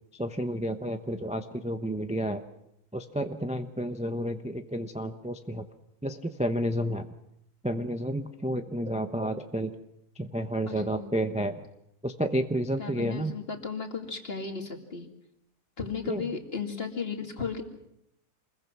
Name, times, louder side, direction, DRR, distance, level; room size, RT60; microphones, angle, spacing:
voice 1, 0.1-2.4 2.9-5.6 6.0-7.1 7.6-9.7 10.2-11.6 12.0-13.3 16.0-16.2, equal, 5° right, 7 dB, 0.6 m, -31 dB
voice 2, 10.7-11.1 12.8-15.1 15.8-17.6, left 5 dB, 35° left, 4 dB, 2.5 m, -35 dB
27.5 x 21.5 x 6.1 m, 0.81 s
omnidirectional pair, 1.7 m